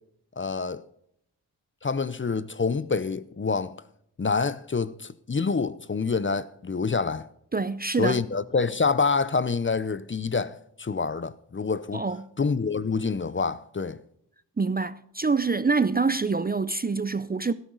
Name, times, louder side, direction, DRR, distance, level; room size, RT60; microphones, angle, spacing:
voice 1, 0.4-0.8 1.8-3.8 4.2-7.3 8.0-12.0 12.4-14.0, left 4 dB, 25° left, 0.7 m, -27 dB
voice 2, 7.5-8.2 11.9-12.2 14.6-17.5, right 4 dB, 20° right, 0.6 m, -26 dB
12.5 x 12.5 x 4.0 m
cardioid pair, 60°, 44 cm